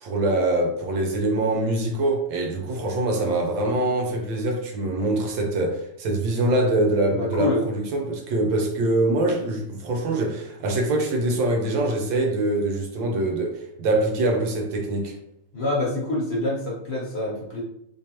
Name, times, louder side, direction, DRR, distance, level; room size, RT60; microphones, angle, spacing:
voice 1, 0.0-15.1, right 2 dB, 75° right, 1.5 m, -24 dB
voice 2, 7.1-7.6 15.5-17.6, left 2 dB, 45° left, 0.9 m, -26 dB
3.6 x 3.3 x 2.9 m
omnidirectional pair, 2.2 m